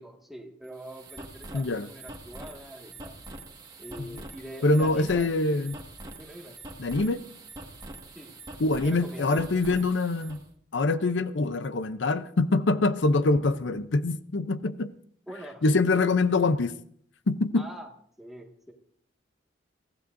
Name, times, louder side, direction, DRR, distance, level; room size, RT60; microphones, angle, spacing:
voice 1, 0.0-3.2 3.8-5.3 6.1-6.6 8.2-8.3 8.8-9.5 11.9-12.0 15.3-16.1 17.6-17.9 18.2-18.7, right 1 dB, ahead, 1.8 m, -44 dB
sound 1, 0.6-10.4, right 2 dB, 20° right, 1.7 m, -44 dB
voice 2, 1.5-1.9 4.0-4.1 4.6-5.8 6.8-7.2 8.6-10.4 10.7-14.9 15.6-16.7 17.3-17.6, left 3 dB, 80° left, 0.6 m, -24 dB
23.5 x 15.5 x 2.6 m
head